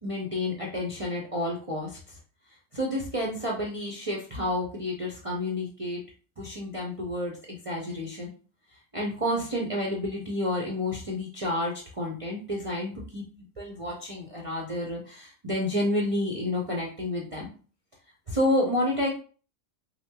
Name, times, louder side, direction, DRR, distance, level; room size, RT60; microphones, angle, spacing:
voice 1, 0.0-2.2 2.7-6.0 6.4-8.3 8.9-13.2 13.6-17.5 18.3-19.1, left 1 dB, 30° right, -3 dB, 0.8 m, -30 dB
5.6 x 2.1 x 3.7 m, 0.39 s
omnidirectional pair, 1.3 m